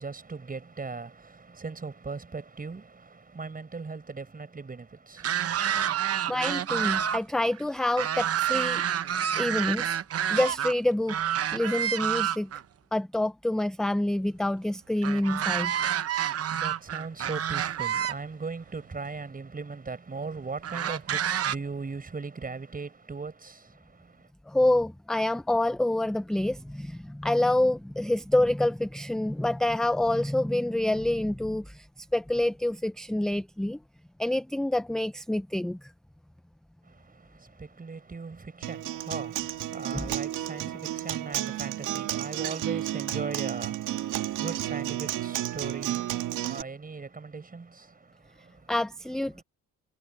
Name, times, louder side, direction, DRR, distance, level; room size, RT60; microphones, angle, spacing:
voice 1, 0.0-6.1 16.3-24.3 36.8-48.7 49.3-49.4, right 4 dB, 30° right, 6.3 m, -39 dB
sound 1, 5.2-7.2 7.5-10.7 11.1-12.6 15.0-18.1 19.1-19.2 20.6-21.6, right 9 dB, 50° right, 1.0 m, -28 dB
voice 2, 6.3-8.8 9.4-10.0 10.3-11.2 11.5-12.5 12.9-15.8 24.5-31.9 32.1-33.8 34.2-35.9 39.9-40.1 48.7-49.4, left 1 dB, ahead, 0.4 m, -27 dB
Acoustic guitar, 38.6-46.6, right 13 dB, 85° right, 2.4 m, -32 dB
cardioid pair, 90°, 30 cm